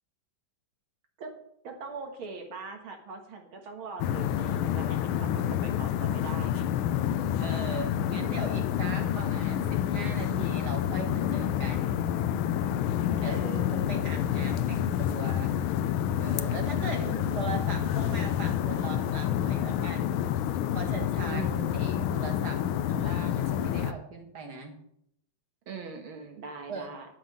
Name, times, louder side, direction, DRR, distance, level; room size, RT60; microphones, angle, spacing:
voice 1, 1.6-6.7 13.2-14.1 16.9-17.4 21.3-21.7 25.7-27.1, right 4 dB, 80° right, 3 dB, 2.3 m, -41 dB
sound 1, 4.0-23.9, left 10 dB, 85° left, 1.4 m, -28 dB
voice 2, 7.4-12.1 13.2-13.4 13.7-15.6 16.2-20.2 20.7-21.4 21.7-24.8 26.7-26.9, right 4 dB, 55° right, 3 dB, 2.1 m, -39 dB
11.5 x 5.6 x 7.5 m, 0.73 s
omnidirectional pair, 2.2 m